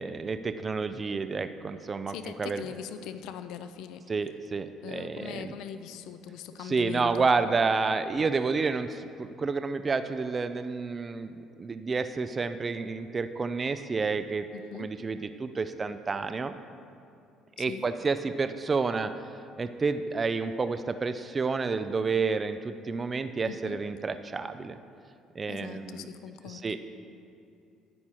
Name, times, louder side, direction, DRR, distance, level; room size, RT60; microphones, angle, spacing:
voice 1, 0.0-2.6 4.1-5.5 6.7-14.5 14.7-16.6 17.6-19.1 19.6-24.8 25.4-26.1 26.5-26.8, right 4 dB, 20° right, 10 dB, 0.3 m, -30 dB
voice 2, 2.1-4.1 4.8-7.3 14.5-14.9 17.6-17.9 23.4-23.8 25.5-26.8, left 9 dB, 65° left, 10 dB, 0.5 m, -41 dB
10.5 x 9.8 x 4.3 m, 2.5 s
cardioid pair, 175°, 0 cm